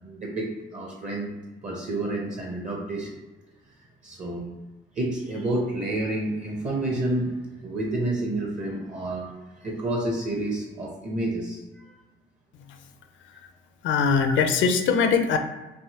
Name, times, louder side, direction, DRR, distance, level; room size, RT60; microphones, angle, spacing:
voice 1, 0.0-1.3 1.6-3.1 4.0-4.5 4.9-11.6, right 1 dB, 40° right, -1 dB, 0.7 m, -29 dB
voice 2, 13.8-15.4, left 6 dB, 75° left, 6 dB, 0.5 m, -22 dB
3.4 x 2.8 x 2.8 m, 1.1 s
cardioid pair, 90°, 20 cm